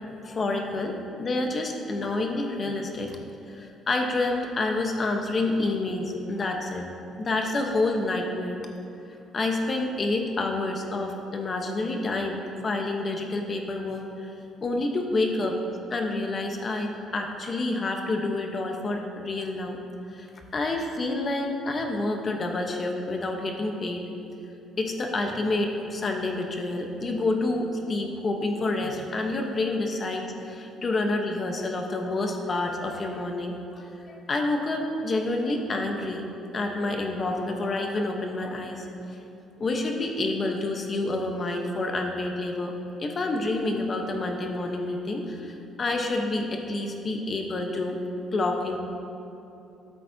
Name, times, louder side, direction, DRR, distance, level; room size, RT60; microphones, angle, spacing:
voice 1, 0.0-3.2 3.5-6.8 7.2-8.6 9.3-14.3 14.6-15.6 15.9-19.8 20.1-20.3 20.5-24.0 24.8-36.2 36.5-38.9 39.6-42.7 43.0-48.0 48.3-48.8, left 2 dB, 35° left, 3 dB, 1.1 m, -28 dB
13.0 x 8.2 x 2.8 m, 2.9 s
cardioid pair, 120°, 0 cm